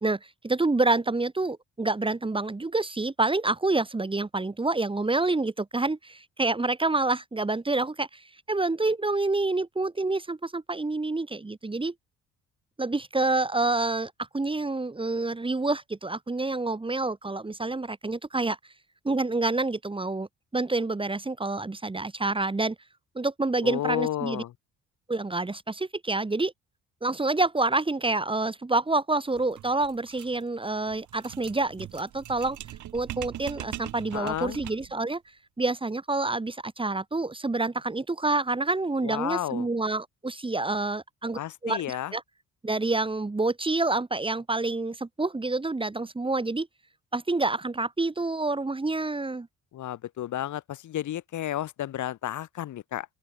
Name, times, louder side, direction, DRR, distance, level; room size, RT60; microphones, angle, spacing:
voice 1, 0.0-11.9 12.8-18.6 19.0-20.3 20.5-22.7 23.1-24.4 25.1-26.5 27.0-32.6 32.9-35.2 35.6-42.2 42.6-46.7 47.1-49.5, right 2 dB, 15° right, 1.7 m, -28 dB
voice 2, 23.6-24.5 34.1-34.6 39.0-39.7 41.3-42.1 49.7-53.1, left 12 dB, 75° left, 4.4 m, -32 dB
sound 1, 29.3-35.0, right 13 dB, 75° right, 2.6 m, -41 dB
open air
cardioid pair, 90°, 30 cm